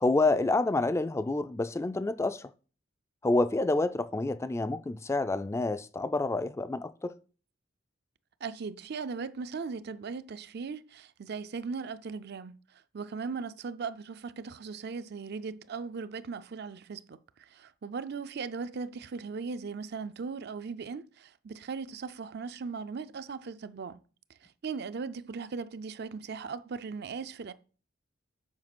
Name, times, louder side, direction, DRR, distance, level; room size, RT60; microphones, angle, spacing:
voice 1, 0.0-2.5 3.2-7.2, left 2 dB, 15° left, 0.3 m, -28 dB
voice 2, 8.4-24.0 24.4-27.5, right 5 dB, 55° right, 0.5 m, -38 dB
7.4 x 5.0 x 6.0 m
head